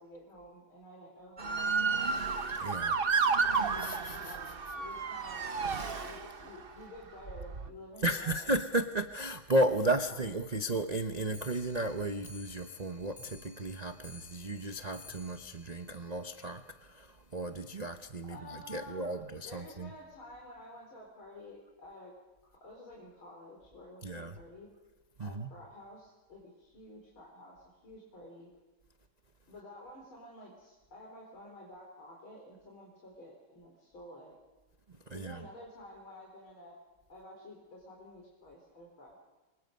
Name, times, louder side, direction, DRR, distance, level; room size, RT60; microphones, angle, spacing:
voice 1, 0.0-1.7 3.7-5.4 6.0-8.5 10.1-10.2 18.3-22.1 22.4-24.7 25.2-28.5 29.5-34.4 35.1-36.8 37.1-39.2, left 1 dB, 90° left, -2 dB, 5.2 m, -51 dB
Motor vehicle (road) / Siren, 1.4-6.6 7.3-7.7, right 5 dB, 35° right, 1.0 m, -31 dB
voice 2, 2.5-3.0 3.8-4.4 5.9-6.1 8.0-19.9 24.0-24.4 25.2-25.5 35.1-35.4, right 1 dB, 85° right, 7 dB, 0.3 m, -34 dB
Clock, 11.2-16.7 17.1-17.2 17.4-17.5 17.9-18.0 18.2-18.3 19.0-19.1 19.8-19.9 20.6-20.7, left 2 dB, 15° left, 7.7 m, -55 dB
28.0 x 24.0 x 5.4 m, 1.2 s
omnidirectional pair, 2.2 m